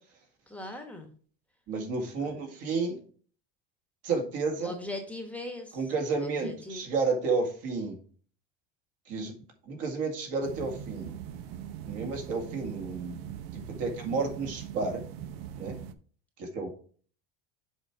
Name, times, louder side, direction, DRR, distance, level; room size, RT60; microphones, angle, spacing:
voice 1, 0.5-1.1 2.2-2.4 4.6-5.8 6.2-6.8, left 2 dB, 5° left, 4 dB, 1.0 m, -39 dB
voice 2, 1.7-3.0 4.0-4.7 5.7-8.0 9.1-9.3 9.7-11.1 11.8-13.2 13.5-15.0 15.6-15.8 16.4-16.7, right 4 dB, 55° right, 3 dB, 2.2 m, -31 dB
sound 1, 10.4-15.9, right 9 dB, 85° right, 0.8 m, -41 dB
7.3 x 4.6 x 4.5 m, 0.43 s
cardioid pair, 150°, 29 cm